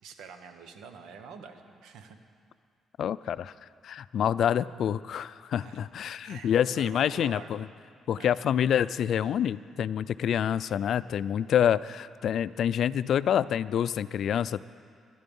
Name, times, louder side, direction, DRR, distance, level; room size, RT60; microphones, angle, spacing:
voice 1, 0.0-2.2 5.6-5.9 6.2-7.5 8.2-8.3, right 6 dB, 85° right, 7 dB, 1.2 m, -46 dB
voice 2, 3.0-7.7 8.1-14.6, left 9 dB, 65° left, 16 dB, 0.4 m, -27 dB
21.5 x 11.5 x 5.4 m, 2.2 s
cardioid pair, 90°, 0 cm